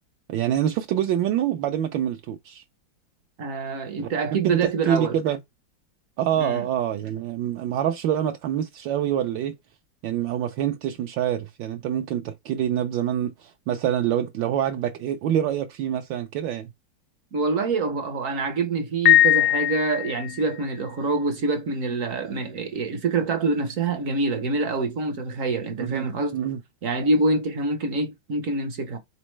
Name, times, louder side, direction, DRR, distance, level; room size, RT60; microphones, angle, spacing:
voice 1, 0.3-2.6 4.0-4.1 4.4-5.4 6.2-9.6 10.0-16.7 25.8-26.6, right 10 dB, 75° right, 1.2 m, -26 dB
voice 2, 3.4-5.2 6.4-6.7 17.3-26.4 26.8-29.0, right 3 dB, 60° right, 0.9 m, -26 dB
Piano, 19.1-20.5, left 14 dB, 70° left, 1.0 m, -19 dB
4.2 x 3.8 x 3.1 m
omnidirectional pair, 2.1 m